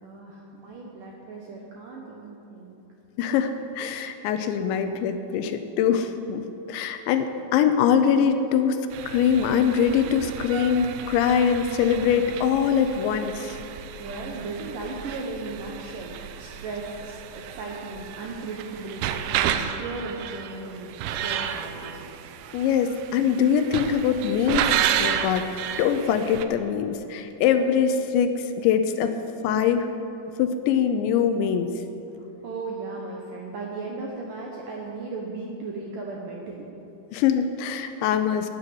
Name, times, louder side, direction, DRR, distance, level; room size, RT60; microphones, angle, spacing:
voice 1, 0.0-2.7 14.0-22.0 32.2-36.7, right 3 dB, 70° right, -2 dB, 2.1 m, -36 dB
voice 2, 3.2-8.8 9.1-13.6 22.5-29.1 29.4-29.9 30.4-31.7 37.1-38.5, left 7 dB, 80° left, 8 dB, 2.8 m, -23 dB
sound 1, 8.9-26.5, right 9 dB, 85° right, 3.2 m, -32 dB
12.5 x 9.1 x 9.7 m, 2.9 s
omnidirectional pair, 5.4 m